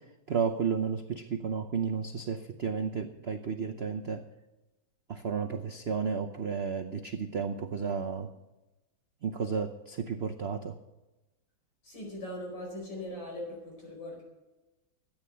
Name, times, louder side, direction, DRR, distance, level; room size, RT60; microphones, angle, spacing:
voice 1, 0.3-4.2 5.1-8.3 9.2-10.8, right 6 dB, 70° right, 7 dB, 0.6 m, -32 dB
voice 2, 11.8-14.2, left 1 dB, 65° left, -1 dB, 5.7 m, -40 dB
13.5 x 8.9 x 8.4 m, 1.0 s
omnidirectional pair, 2.2 m